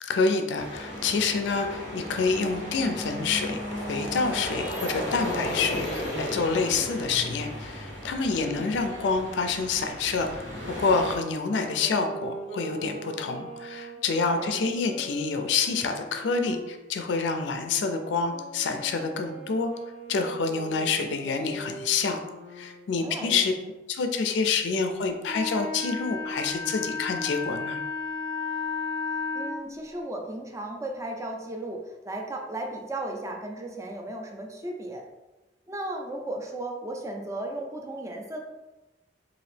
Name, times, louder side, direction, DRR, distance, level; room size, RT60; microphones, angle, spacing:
voice 1, 0.0-3.6 3.9-10.5 10.8-19.7 20.1-22.2 22.5-23.5 23.9-27.8, left 4 dB, 70° left, 6 dB, 0.4 m, -27 dB
sound 1, 0.5-11.2, equal, 85° right, 1.2 m, -35 dB
voice 2, 8.4-8.7 14.2-14.7 23.0-23.4 29.3-35.0 35.7-38.4, right 1 dB, 15° right, 2 dB, 0.4 m, -35 dB
Wind instrument woodwind instrument, 10.9-16.7 17.4-22.8, right 2 dB, 65° right, 1.1 m, -42 dB
Wind instrument woodwind instrument 2, 25.2-29.6, left 4 dB, 30° left, 0.7 m, -32 dB
2.9 x 2.5 x 3.2 m, 1.1 s
head